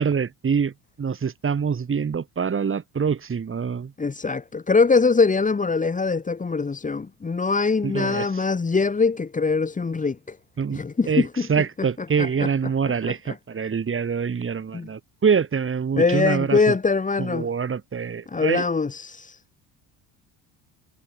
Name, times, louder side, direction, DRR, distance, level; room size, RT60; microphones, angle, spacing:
voice 1, 0.0-3.9 7.8-8.3 10.6-10.8 11.1-16.7 17.2-18.7, right 6 dB, 25° right, 2.5 m, -25 dB
voice 2, 4.0-10.4 10.7-11.5 12.2-12.5 14.7-14.9 16.0-17.5 18.3-19.4, left 4 dB, 15° left, 1.5 m, -22 dB
supercardioid pair, 95°, 46 cm